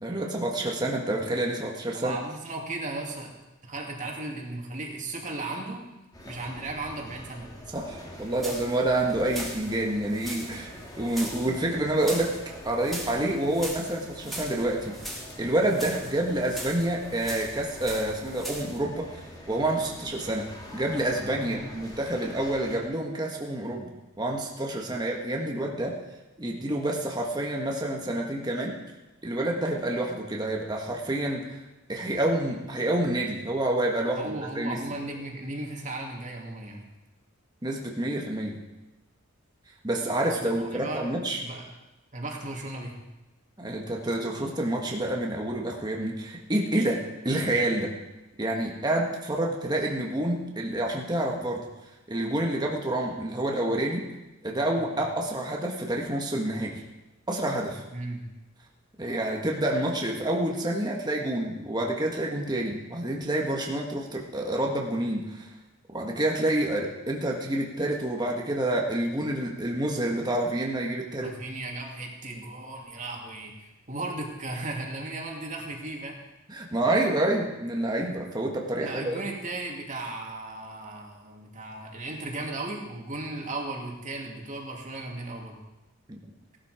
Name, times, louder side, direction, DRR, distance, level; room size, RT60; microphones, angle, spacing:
voice 1, 0.0-2.2 7.7-10.7 11.0-12.3 12.6-23.9 24.2-26.0 26.4-28.8 29.2-31.6 31.9-34.8 37.6-38.6 39.8-41.4 43.6-47.9 48.4-51.6 52.1-54.1 54.4-56.8 57.3-57.8 59.0-65.5 65.9-71.3 76.5-79.2 86.1-86.2, right 1 dB, 20° right, -1 dB, 1.6 m, -28 dB
voice 2, 1.9-3.3 3.6-5.8 6.2-7.5 21.5-21.7 34.1-36.8 40.2-41.1 41.4-41.6 42.1-42.9 54.8-54.9 57.9-58.2 71.2-76.1 78.8-85.6, right 2 dB, 35° right, 0 dB, 2.6 m, -36 dB
sound 1, 6.1-22.8, left 1 dB, 20° left, 2.4 m, -45 dB
sound 2, 8.2-18.8, right 1 dB, ahead, 3.1 m, -41 dB
17.0 x 12.0 x 5.0 m, 1.0 s
head